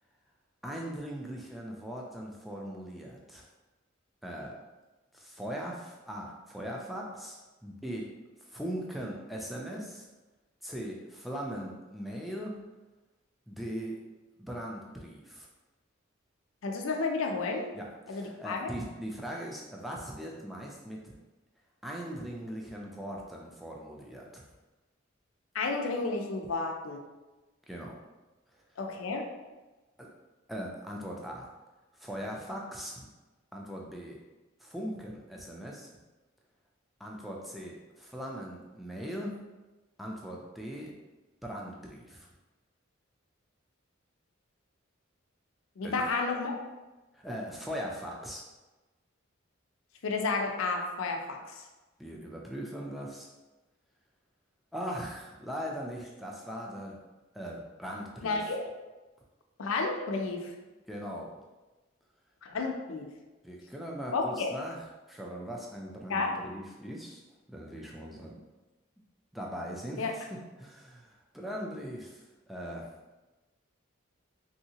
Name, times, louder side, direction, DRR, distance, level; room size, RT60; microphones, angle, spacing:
voice 1, 0.6-3.4 4.2-4.6 5.1-8.1 8.4-10.1 10.6-12.6 13.5-14.0 14.4-15.5 17.7-21.1 21.8-24.4 27.7-28.0 28.5-28.6 30.0-30.1 30.5-31.5 31.9-33.1 33.5-34.2 34.6-35.9 37.0-39.4 40.0-40.9 41.4-42.3 45.8-46.0 47.1-48.4 52.0-53.3 54.7-57.0 57.3-58.5 60.9-61.3 63.4-67.2 67.5-68.4 69.3-72.9, equal, ahead, -2 dB, 0.3 m, -40 dB
voice 2, 16.6-17.7 18.1-18.7 25.5-27.0 28.8-29.2 45.8-46.6 50.0-51.6 58.2-58.7 59.6-60.5 62.4-63.1 64.1-64.5 66.1-66.3 70.0-70.1, left 3 dB, 80° left, 3 dB, 0.5 m, -31 dB
3.1 x 2.7 x 2.8 m, 1.1 s
head